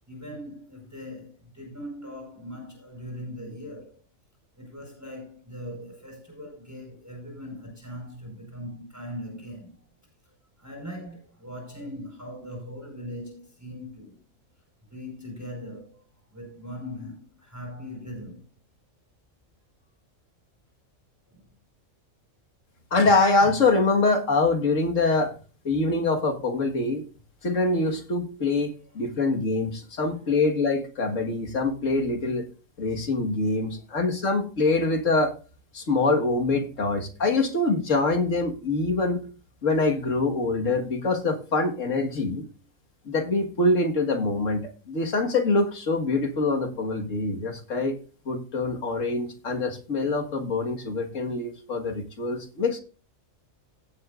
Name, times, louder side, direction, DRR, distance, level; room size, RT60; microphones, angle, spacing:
voice 1, 0.1-4.0 4.5-9.8 10.2-10.3 10.6-14.2 14.9-18.5 21.3-21.4 28.8-29.5 30.0-30.3 33.5-34.3 37.1-37.2, equal, 10° right, 4.8 m, -40 dB
voice 2, 22.9-25.3 25.6-27.0 27.4-32.5 32.8-35.3 35.7-39.2 39.6-42.4 43.1-48.0 48.3-52.8, left 3 dB, 65° left, 2.0 m, -24 dB
16.5 x 8.1 x 2.5 m
omnidirectional pair, 1.4 m